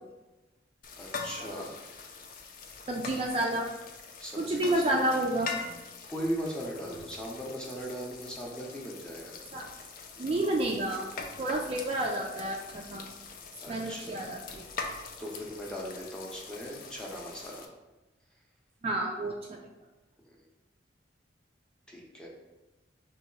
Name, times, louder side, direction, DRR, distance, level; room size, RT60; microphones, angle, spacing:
sound 1, 0.8-17.7, left 4 dB, 50° left, 0.4 m, -43 dB
voice 1, 1.0-1.7 4.2-5.1 6.0-9.4 13.6-14.2 15.2-17.7 20.2-20.4 21.9-22.3, equal, 5° left, -3 dB, 0.6 m, -38 dB
voice 2, 2.9-3.7 4.4-5.5 9.5-9.6 10.2-11.1 11.4-13.1 13.7-14.7 18.8-19.6, right 1 dB, 30° right, 0 dB, 0.3 m, -30 dB
3.0 x 2.8 x 4.5 m, 1.1 s
head